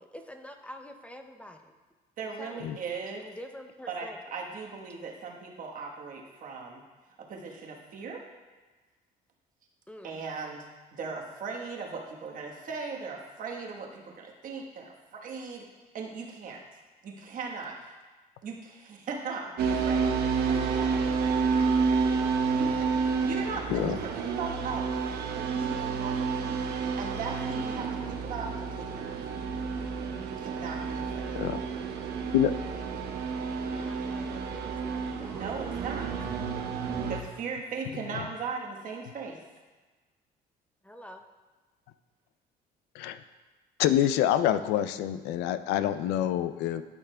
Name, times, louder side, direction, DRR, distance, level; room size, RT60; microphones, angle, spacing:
voice 1, 0.0-1.7 2.2-2.7 3.2-4.2 9.9-10.2 33.7-35.6 40.8-41.2, equal, 5° left, 5 dB, 0.5 m, -46 dB
voice 2, 2.2-3.2 3.9-6.8 7.2-8.2 10.0-15.7 15.9-16.6 17.0-17.9 18.4-21.0 22.5-25.0 25.3-26.5 27.0-29.2 30.4-31.4 35.3-36.1 37.1-39.4, right 4 dB, 55° right, 0 dB, 1.2 m, -38 dB
sound 1, 19.6-37.2, right 5 dB, 70° right, 0.7 m, -30 dB
voice 3, 43.8-46.8, left 11 dB, 90° left, 12 dB, 0.4 m, -26 dB
12.0 x 5.8 x 2.2 m, 1.3 s
cardioid pair, 110°, 17 cm